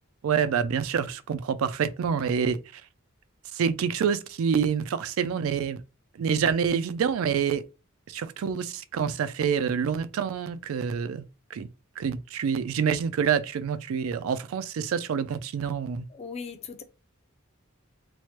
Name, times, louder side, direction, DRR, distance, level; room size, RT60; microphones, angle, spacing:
voice 1, 0.2-2.8 3.5-5.8 6.1-7.6 8.1-11.2 11.5-11.7 12.0-16.0, right 7 dB, 85° right, 0.3 m, -27 dB
voice 2, 16.1-16.8, left 5 dB, 30° left, 0.4 m, -38 dB
3.1 x 2.1 x 2.9 m
head